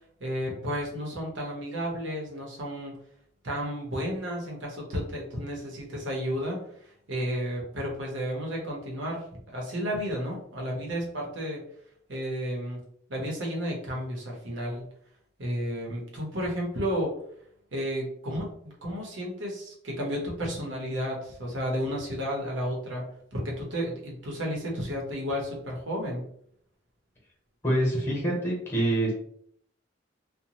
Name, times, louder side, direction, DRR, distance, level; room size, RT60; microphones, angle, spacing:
voice 1, 0.2-2.9 3.4-11.6 12.1-12.8 13.1-14.9 15.4-17.1 17.7-26.3, equal, 80° right, -1 dB, 0.9 m, -32 dB
voice 2, 27.6-29.1, right 1 dB, 15° left, -3 dB, 1.0 m, -25 dB
2.6 x 2.2 x 2.9 m, 0.67 s
head